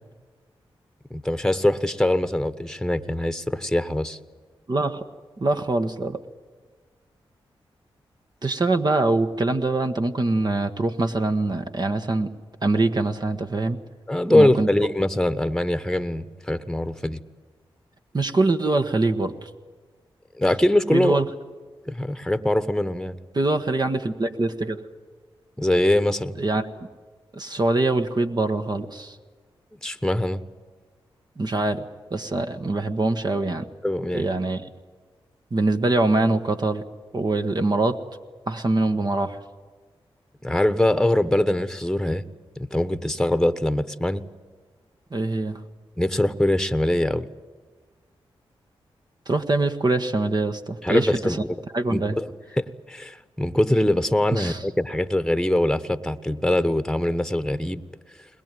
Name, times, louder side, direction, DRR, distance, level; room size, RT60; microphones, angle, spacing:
voice 1, 1.1-4.2 14.1-17.2 20.4-21.2 21.9-23.2 25.6-26.3 29.8-30.4 33.8-34.3 40.4-42.2 42.6-44.2 46.0-47.3 50.8-51.4 51.9-57.8, left 1 dB, 5° left, 12 dB, 1.2 m, -23 dB
voice 2, 4.7-5.0 5.4-6.2 8.4-12.3 12.6-13.8 14.3-14.7 18.1-19.5 20.9-21.2 23.3-24.9 26.4-26.7 27.3-29.2 31.4-31.9 32.1-33.7 34.1-34.6 35.5-36.8 37.1-38.0 38.5-39.4 45.1-45.6 49.3-51.4 51.7-52.2 54.3-54.6, right 2 dB, 45° right, 6 dB, 1.4 m, -23 dB
21.5 x 20.0 x 9.2 m, 1.5 s
cardioid pair, 45°, 10 cm